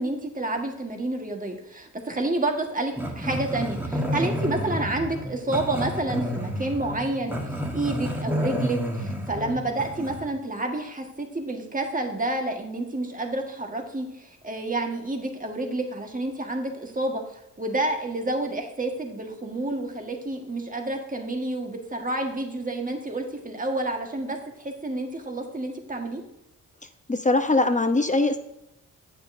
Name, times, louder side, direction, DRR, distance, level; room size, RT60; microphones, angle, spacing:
voice 1, 0.0-17.2 17.6-26.2, right 2 dB, 20° right, 3 dB, 1.6 m, -29 dB
Growling, 3.0-10.3, equal, 5° right, 1.6 m, -30 dB
voice 2, 27.1-28.4, left 2 dB, 20° left, 8 dB, 0.8 m, -21 dB
8.8 x 6.9 x 2.7 m, 0.88 s
supercardioid pair, 45°, 36 cm